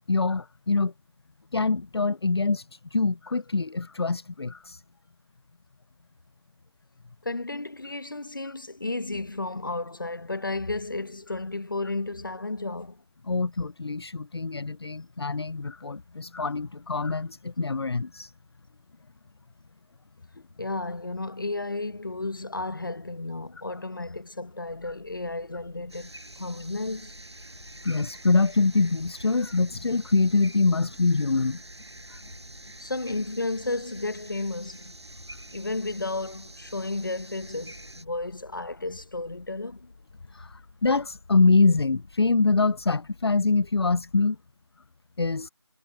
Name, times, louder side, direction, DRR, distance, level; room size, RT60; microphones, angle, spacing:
voice 1, 0.1-0.9 1.5-4.8 8.5-8.6 13.3-18.3 27.8-31.6 32.1-32.2 40.3-44.4 45.2-45.5, left 3 dB, 70° left, 0.5 m, -24 dB
voice 2, 7.2-13.0 20.6-27.2 32.8-35.0 35.5-39.9, left 2 dB, 50° left, 1.0 m, -33 dB
sound 1, 24.6-44.2, left 3 dB, 30° left, 5.0 m, -54 dB
sound 2, 25.9-38.0, right 2 dB, 90° right, 5.7 m, -47 dB
figure-of-eight pair, 180°, 14 cm